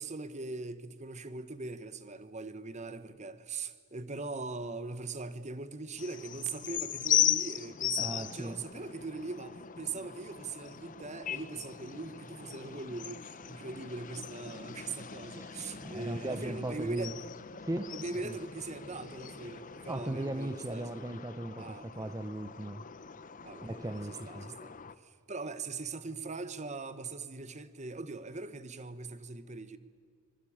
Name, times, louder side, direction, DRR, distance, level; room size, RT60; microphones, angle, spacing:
voice 1, 0.0-17.2 17.9-21.0 21.6-22.2 23.4-29.8, right 3 dB, 35° right, 1.1 m, -41 dB
sound 1, 6.0-24.9, left 10 dB, 40° left, 0.8 m, -38 dB
voice 2, 8.0-8.6 15.3-17.2 17.6-17.9 18.2-18.4 19.9-22.9 23.6-24.5, right 1 dB, 15° right, 0.7 m, -38 dB
25.0 x 22.5 x 8.7 m
head